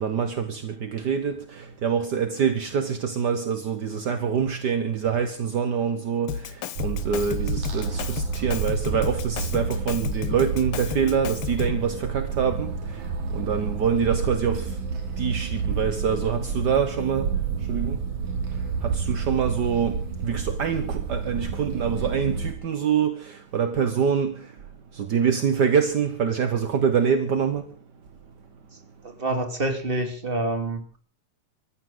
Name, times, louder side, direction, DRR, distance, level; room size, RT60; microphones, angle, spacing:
voice 1, 0.0-13.0 13.3-14.7 15.2-17.3 17.7-18.0 18.8-24.5 24.9-27.6, right 7 dB, 50° right, 1.2 m, -25 dB
Drum kit, 6.3-11.9, left 9 dB, 65° left, 1.5 m, -33 dB
sound 1, 6.8-22.5, right 5 dB, 75° right, 4.0 m, -30 dB
voice 2, 29.0-31.0, right 2 dB, 20° right, 2.8 m, -27 dB
25.0 x 14.5 x 4.0 m
omnidirectional pair, 3.4 m